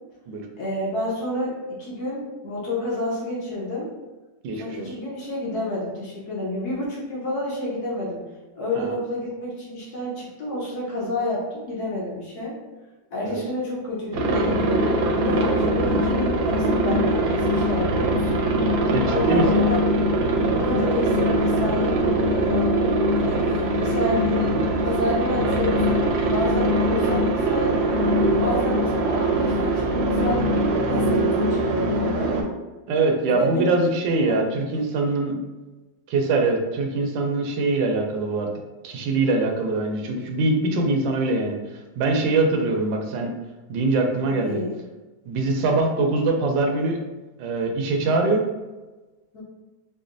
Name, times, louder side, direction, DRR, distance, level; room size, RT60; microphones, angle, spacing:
voice 1, 0.6-3.9 4.5-8.2 8.5-12.5 13.1-15.0 15.2-18.5 19.0-19.8 20.5-22.7 23.1-25.9 26.3-28.0 28.3-32.3 33.2-33.7 34.3-34.5 34.9-35.0 44.3-44.7 49.3-49.4, left 1 dB, 65° left, -6 dB, 1.4 m, -29 dB
voice 2, 4.4-4.9 8.8-9.0 13.2-13.4 18.9-19.6 32.9-35.4 36.1-38.5 38.8-41.6 42.0-43.3 43.7-44.6 45.3-47.0 47.4-48.5, right 3 dB, 90° right, 3 dB, 1.3 m, -23 dB
Aircraft, 14.1-32.4, right 1 dB, 75° right, 1.0 m, -22 dB
4.7 x 2.2 x 2.5 m, 1.2 s
omnidirectional pair, 1.9 m